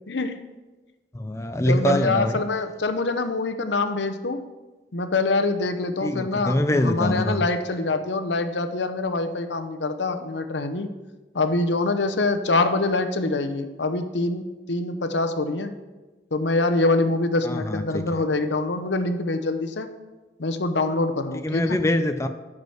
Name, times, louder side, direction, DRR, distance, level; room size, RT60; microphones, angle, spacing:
voice 1, 0.1-0.5 1.6-4.5 4.9-10.9 11.3-15.7 16.3-19.9 20.4-21.8, left 2 dB, 85° left, 9 dB, 0.8 m, -25 dB
voice 2, 1.1-2.4 6.0-7.4 17.4-18.0 21.4-22.3, left 1 dB, 15° left, 7 dB, 0.5 m, -23 dB
14.0 x 5.0 x 6.4 m, 1.2 s
head